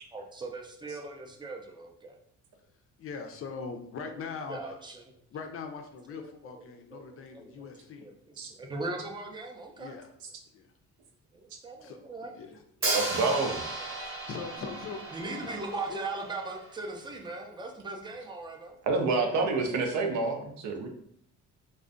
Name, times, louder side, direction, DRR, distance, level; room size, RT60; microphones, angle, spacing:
voice 1, 0.1-2.2 4.1-5.2 6.1-10.0 11.3-12.9 13.7-13.9 15.1-18.8, right 3 dB, 15° right, 2 dB, 0.4 m, -40 dB
voice 2, 3.0-4.6 5.3-8.1 9.8-10.1 10.5-10.7 11.8-12.0 12.4-12.5 14.3-15.0 15.3-15.6 15.9-16.0 19.1-19.5, left 5 dB, 45° left, 5 dB, 0.4 m, -41 dB
Hi-hat, 12.8-16.8, right 2 dB, 45° right, 0.8 m, -35 dB
voice 3, 12.9-13.6 18.9-20.9, right 3 dB, 75° right, 3 dB, 0.5 m, -28 dB
2.4 x 2.1 x 2.4 m, 0.68 s
cardioid pair, 90°, 30 cm